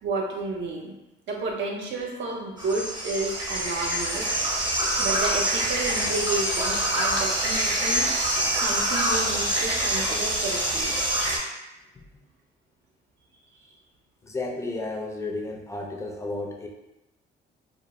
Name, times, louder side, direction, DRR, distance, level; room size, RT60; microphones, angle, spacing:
voice 1, 0.0-0.9 1.3-4.3 5.0-8.1 8.5-10.9, right 3 dB, 65° right, 0 dB, 0.6 m, -31 dB
sound 1, 2.6-11.4, right 1 dB, 20° right, 0.7 m, -25 dB
voice 2, 14.2-16.7, left 2 dB, 15° left, 1 dB, 0.4 m, -33 dB
2.2 x 2.0 x 2.9 m, 0.96 s
cardioid pair, 90°, 20 cm